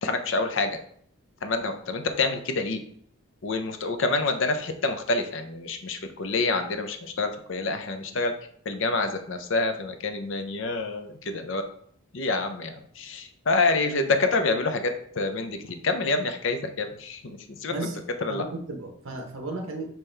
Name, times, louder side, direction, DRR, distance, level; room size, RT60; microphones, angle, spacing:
voice 1, 0.0-0.8 1.4-2.8 3.4-8.3 8.7-11.6 12.1-14.9 15.2-17.9 18.2-18.4, left 3 dB, 55° left, 7 dB, 0.5 m, -27 dB
voice 2, 18.3-19.9, right 2 dB, 65° right, 3 dB, 0.8 m, -34 dB
5.4 x 2.9 x 3.3 m, 0.63 s
head